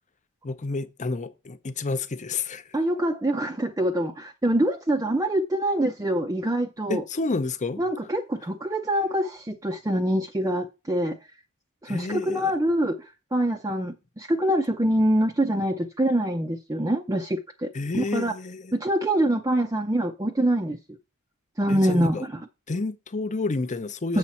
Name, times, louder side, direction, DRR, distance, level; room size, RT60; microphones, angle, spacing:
voice 1, 0.4-2.8 6.9-7.8 11.9-12.5 17.7-18.8 21.7-22.3 22.7-24.2, left 3 dB, 35° left, 0.7 m, -30 dB
voice 2, 2.7-7.0 7.8-11.2 11.8-17.7 17.9-18.3 18.7-20.8 21.6-22.4 24.1-24.2, right 1 dB, 15° right, 0.6 m, -25 dB
7.4 x 6.7 x 4.2 m
head